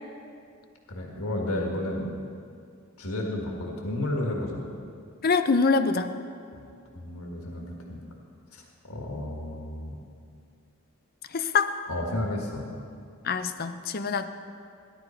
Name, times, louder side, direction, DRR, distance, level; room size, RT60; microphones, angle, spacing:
voice 1, 0.9-2.1 3.0-4.6 6.5-6.7 7.0-8.0 8.5-10.0 11.9-12.6, left 1 dB, 80° left, -1 dB, 1.8 m, -32 dB
voice 2, 5.2-6.1 11.3-11.7 13.2-14.3, left 4 dB, 45° left, 10 dB, 0.6 m, -24 dB
16.5 x 11.5 x 4.5 m, 2.4 s
head